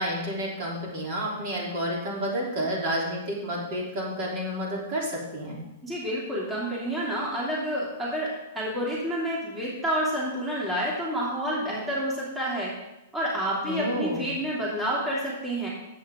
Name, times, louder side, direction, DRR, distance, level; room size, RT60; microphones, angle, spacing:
voice 1, 0.0-5.6 13.7-14.2, equal, 50° right, -3 dB, 3.2 m, -30 dB
voice 2, 5.8-8.3 8.5-12.7 13.1-15.7, equal, 10° right, -5 dB, 2.7 m, -29 dB
10.5 x 8.1 x 3.6 m, 0.90 s
hypercardioid pair, 140°, 0 cm